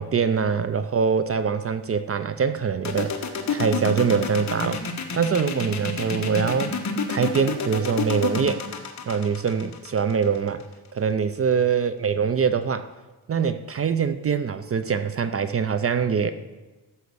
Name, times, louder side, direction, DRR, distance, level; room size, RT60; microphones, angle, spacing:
voice 1, 0.0-3.1 3.5-4.8 5.1-6.7 7.1-8.7 9.1-10.6 10.9-12.9 13.3-16.3, right 6 dB, 35° right, 12 dB, 0.5 m, -23 dB
sound 1, 2.8-10.6, left 5 dB, 45° left, 1.5 m, -29 dB
13.5 x 5.7 x 8.0 m, 1.2 s
wide cardioid pair, 140°, 40 cm